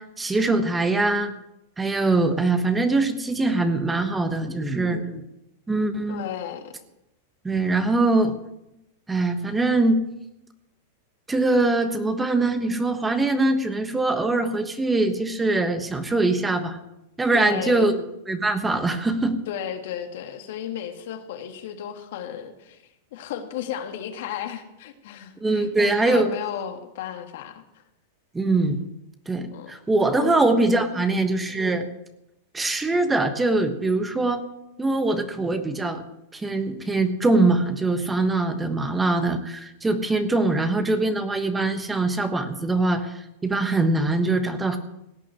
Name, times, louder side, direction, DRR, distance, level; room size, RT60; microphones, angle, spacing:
voice 1, 0.0-1.3 1.8-5.2 5.7-6.3 7.4-8.3 9.1-10.1 11.3-16.8 17.2-19.4 25.4-26.3 28.3-28.8 29.3-31.9 32.5-34.4 34.8-36.0 36.3-44.8, right 2 dB, 10° right, 8 dB, 1.2 m, -23 dB
voice 2, 6.1-6.7 17.3-17.9 19.5-22.8 23.1-27.8 29.5-29.7 30.2-30.4 30.9-31.2, left 9 dB, 65° left, 7 dB, 2.0 m, -34 dB
17.5 x 6.3 x 9.9 m, 0.88 s
supercardioid pair, 140°, 0 cm